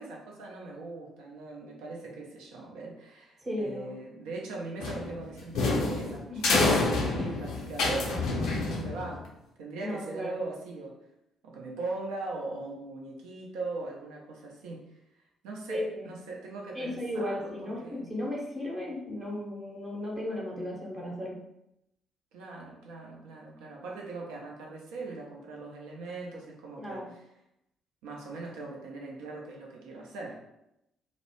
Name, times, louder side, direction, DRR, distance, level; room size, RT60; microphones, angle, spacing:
voice 1, 0.0-9.3 9.6-11.0 11.4-14.9 15.4-18.2 22.3-27.2 28.0-30.4, right 3 dB, 65° right, -1 dB, 0.5 m, -40 dB
voice 2, 3.4-3.9 6.3-6.6 9.8-10.4 15.7-16.1 16.7-21.4 26.8-27.1, left 1 dB, 35° right, -4 dB, 0.9 m, -35 dB
sound 1, 4.8-9.3, left 3 dB, 60° left, 0.5 m, -28 dB
2.4 x 2.0 x 3.0 m, 0.83 s
figure-of-eight pair, 45°, 0 cm